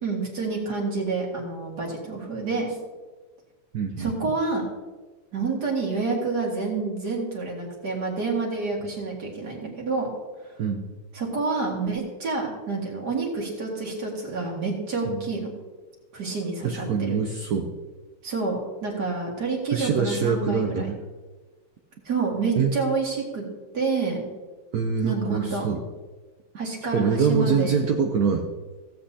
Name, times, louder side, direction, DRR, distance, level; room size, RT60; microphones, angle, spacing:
voice 1, 0.0-2.7 4.0-4.6 5.3-10.1 10.4-10.5 11.1-15.5 16.1-17.2 18.2-20.9 22.0-23.5 23.7-24.3 25.0-25.6 26.6-27.8, right 4 dB, 50° right, -1 dB, 2.4 m, -28 dB
voice 2, 3.7-4.1 10.6-10.9 15.1-15.3 16.6-17.7 19.7-21.0 22.6-22.8 24.7-25.8 26.9-28.5, right 6 dB, 75° right, 3 dB, 0.8 m, -24 dB
16.0 x 8.0 x 2.8 m, 1.3 s
omnidirectional pair, 2.4 m